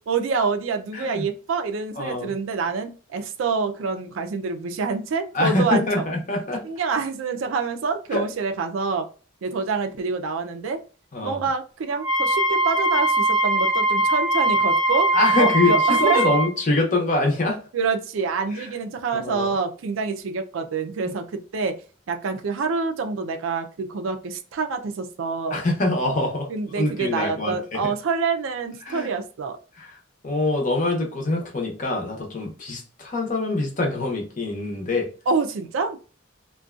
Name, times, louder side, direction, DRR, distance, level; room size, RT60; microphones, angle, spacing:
voice 1, 0.1-6.0 6.6-9.1 9.4-10.8 11.2-15.1 15.4-16.3 17.7-21.8 22.1-25.6 26.5-29.6 35.3-36.0, right 4 dB, 80° right, 8 dB, 0.4 m, -26 dB
voice 2, 0.9-1.3 2.0-2.3 5.3-6.6 8.1-8.2 11.1-11.5 15.1-17.6 18.5-18.7 19.1-19.5 25.5-26.5 26.8-27.9 28.8-29.1 29.8-29.9 30.2-35.1, left 2 dB, 40° left, 1 dB, 0.7 m, -24 dB
Wind instrument woodwind instrument, 12.0-16.5, right 2 dB, ahead, 0.4 m, -21 dB
2.5 x 2.2 x 2.3 m, 0.37 s
head